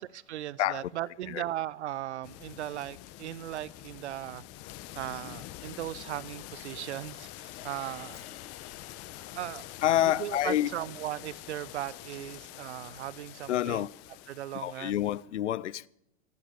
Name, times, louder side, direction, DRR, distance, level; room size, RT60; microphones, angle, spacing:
voice 1, 0.0-4.4 4.9-8.3 9.1-9.7 10.0-13.9 14.3-15.0, right 13 dB, 75° right, 0.7 m, -38 dB
voice 2, 0.6-0.9 1.3-1.4 9.8-10.7 13.5-13.9 14.5-15.9, left 12 dB, 85° left, 0.6 m, -28 dB
sound 1, 2.2-15.2, left 15 dB, 45° left, 1.1 m, -46 dB
sound 2, 7.6-10.4, left 8 dB, 65° left, 2.5 m, -54 dB
16.5 x 12.0 x 6.6 m
hypercardioid pair, 100°, 34 cm